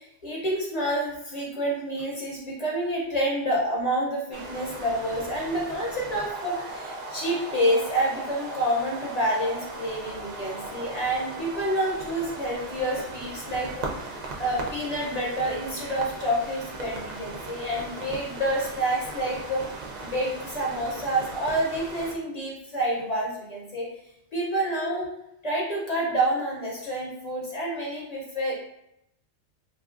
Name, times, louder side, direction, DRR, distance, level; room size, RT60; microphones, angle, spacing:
voice 1, 0.0-19.7 20.0-23.9 24.3-25.1 25.4-28.5, right 1 dB, 45° left, -3 dB, 0.6 m, -28 dB
sound 1, 4.3-22.2, right 2 dB, 60° right, 0.4 m, -38 dB
3.2 x 2.5 x 2.4 m, 0.81 s
omnidirectional pair, 1.2 m